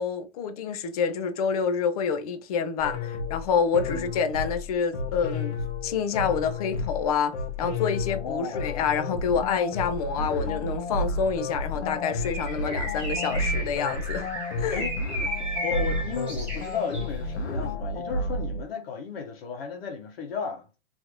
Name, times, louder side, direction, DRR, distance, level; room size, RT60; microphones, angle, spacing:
voice 1, 0.0-5.5 5.8-14.3 14.6-14.8, left 6 dB, 35° left, 0.5 m, -27 dB
sound 1, 2.8-18.6, left 2 dB, 80° left, 1.1 m, -31 dB
voice 2, 8.1-8.7 14.7-15.0 15.6-20.7, left 6 dB, 60° left, 1.3 m, -34 dB
Bird, 12.2-17.1, right 1 dB, 5° right, 1.1 m, -34 dB
3.1 x 3.0 x 2.5 m
hypercardioid pair, 155°, 33 cm